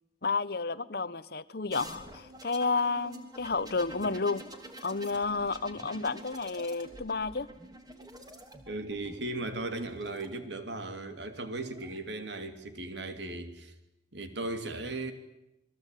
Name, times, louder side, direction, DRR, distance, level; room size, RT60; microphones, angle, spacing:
voice 1, 0.2-4.4 4.8-7.5, left 4 dB, 55° left, 15 dB, 1.0 m, -31 dB
sound 1, 1.7-10.3 11.4-12.0, right 1 dB, 20° right, 3.2 m, -48 dB
voice 2, 8.7-13.7 14.1-15.1, right 2 dB, 70° right, 8 dB, 3.0 m, -37 dB
29.0 x 21.5 x 9.3 m, 0.93 s
head